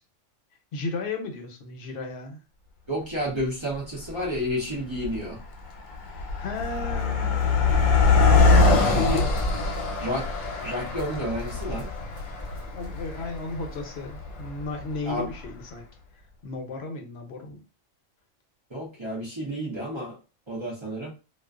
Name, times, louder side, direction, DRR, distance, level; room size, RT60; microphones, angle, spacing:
voice 1, 0.7-2.4 6.1-7.4 8.5-9.3 12.6-15.8 16.4-17.6, left 3 dB, 60° left, 3 dB, 0.8 m, -34 dB
voice 2, 2.9-5.4 8.6-9.2 10.0-10.3 10.6-11.9 15.1-15.3 18.7-20.2 20.5-21.1, equal, 30° right, -4 dB, 0.5 m, -30 dB
Car passing by, 3.4-3.5 4.2-4.5 4.8-15.2, left 4 dB, 90° left, 1.0 m, -24 dB
sound 1, 6.6-13.4 13.7-13.8 14.9-15.0 15.2-15.5, left 1 dB, 75° right, 1.0 m, -30 dB
2.4 x 2.3 x 2.3 m, 0.31 s
omnidirectional pair, 1.3 m